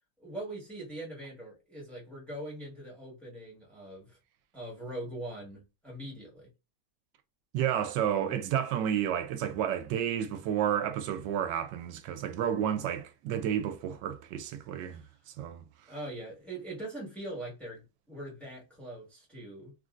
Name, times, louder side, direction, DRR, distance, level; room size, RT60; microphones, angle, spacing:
voice 1, 0.2-4.2 4.5-6.5 8.3-8.4 15.9-19.7, right 1 dB, ahead, 1.2 m, -42 dB
voice 2, 7.5-15.0 15.4-15.6, right 9 dB, 90° right, 1.2 m, -31 dB
3.3 x 2.5 x 2.4 m
omnidirectional pair, 1.8 m